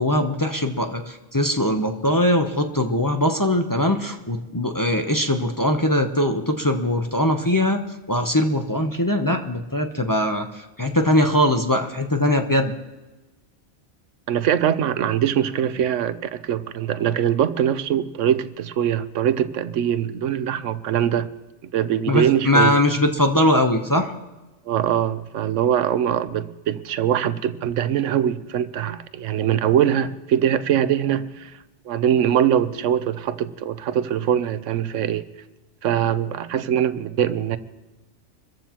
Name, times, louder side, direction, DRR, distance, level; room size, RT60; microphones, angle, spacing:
voice 1, 0.0-12.7 22.1-24.1, left 1 dB, 20° left, 3 dB, 0.7 m, -21 dB
voice 2, 14.3-21.3 21.7-22.8 24.7-31.5 31.9-35.3 35.8-37.6, right 10 dB, 85° right, 13 dB, 1.0 m, -22 dB
26.0 x 14.5 x 2.9 m, 1.1 s
omnidirectional pair, 1.2 m